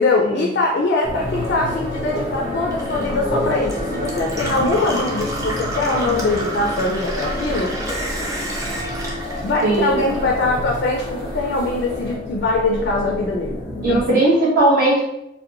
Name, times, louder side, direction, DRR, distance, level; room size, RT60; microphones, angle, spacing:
voice 1, 0.0-7.7 9.4-14.2, left 2 dB, 55° left, 0 dB, 0.3 m, -22 dB
Gurgling / Water tap faucet / Sink (filling or washing), 0.7-10.3 10.6-11.5, right 1 dB, 15° right, 0.4 m, -31 dB
sound 1, 1.0-14.1, left 1 dB, 10° left, 0.7 m, -29 dB
sound 2, 1.1-12.2, equal, 80° right, 1.0 m, -35 dB
voice 2, 9.6-10.1 13.8-15.0, right 2 dB, 50° right, -6 dB, 1.0 m, -17 dB
2.5 x 2.1 x 2.7 m, 0.87 s
head